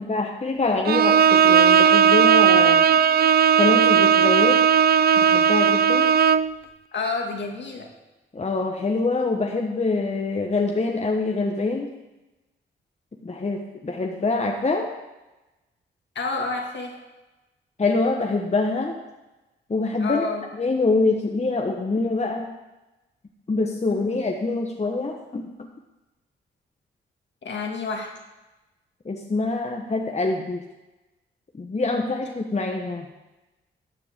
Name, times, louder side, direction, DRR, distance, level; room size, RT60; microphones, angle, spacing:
voice 1, 0.1-2.8 3.6-4.6 5.2-6.1 8.3-11.9 13.2-14.9 17.8-19.0 19.7-20.2 20.6-22.5 23.5-25.7 29.0-30.6 31.5-33.1, left 3 dB, 30° left, 1 dB, 1.2 m, -25 dB
Bowed string instrument, 0.9-6.5, right 7 dB, 50° right, 0.4 m, -16 dB
voice 2, 6.9-7.9 16.1-17.0 20.0-20.4 23.9-24.2 27.4-28.1, left 3 dB, 60° left, 1 dB, 2.1 m, -29 dB
13.5 x 7.5 x 3.7 m, 1.0 s
supercardioid pair, 55°, 21 cm